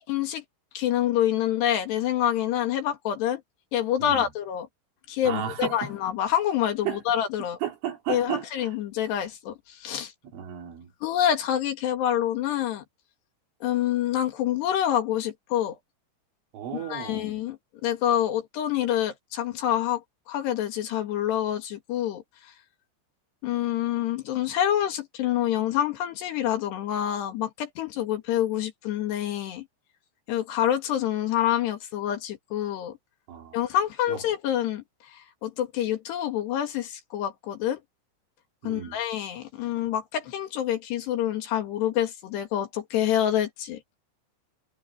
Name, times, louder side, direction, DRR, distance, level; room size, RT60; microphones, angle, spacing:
voice 1, 0.1-0.4 0.8-3.4 3.7-4.7 5.1-7.6 8.1-10.1 11.0-12.8 13.6-15.8 16.7-22.5 23.4-29.7 30.3-33.0 33.5-37.8 38.6-43.8, left 11 dB, 65° left, 3.8 m, -27 dB
voice 2, 5.3-5.9 6.9-7.0 7.6-8.7 10.3-10.9 16.5-17.3 33.3-33.6 34.1-34.2 38.6-39.0, right 9 dB, 85° right, 5.5 m, -33 dB
omnidirectional pair, 5.5 m